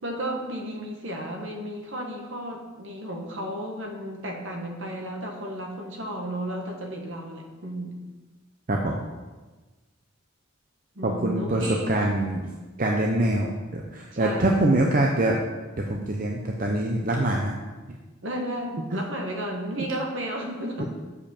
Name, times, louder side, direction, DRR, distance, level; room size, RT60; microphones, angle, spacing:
voice 1, 0.0-8.0 10.9-12.1 14.1-14.8 18.2-20.9, right 1 dB, 60° right, 1 dB, 1.4 m, -33 dB
voice 2, 11.0-12.4 12.8-15.4 15.8-17.5 18.7-19.0 19.8-19.9 20.8-20.9, right 1 dB, 40° right, 0 dB, 0.7 m, -24 dB
6.7 x 5.3 x 7.1 m, 1.2 s
head